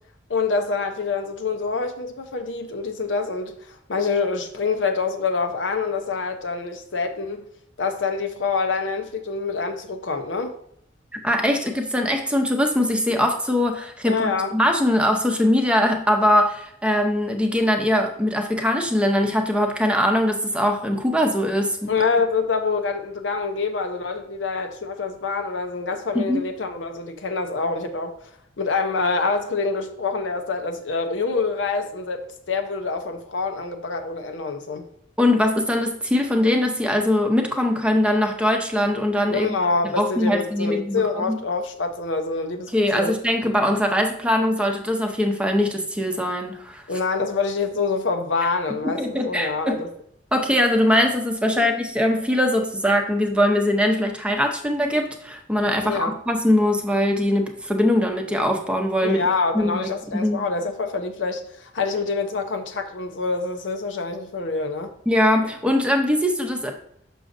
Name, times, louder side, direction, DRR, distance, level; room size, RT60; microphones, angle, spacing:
voice 1, 0.3-7.4 7.8-10.5 14.0-14.5 21.9-28.2 28.6-34.8 39.3-43.2 46.9-49.9 51.6-51.7 55.8-56.1 59.0-64.9, left 4 dB, 85° left, 0.7 m, -26 dB
voice 2, 11.1-21.9 26.1-26.4 35.2-39.5 40.0-41.4 42.7-46.8 49.0-49.8 50.3-59.2 59.5-60.4 65.1-66.7, left 1 dB, 5° right, 0.7 m, -21 dB
6.2 x 6.1 x 2.6 m
head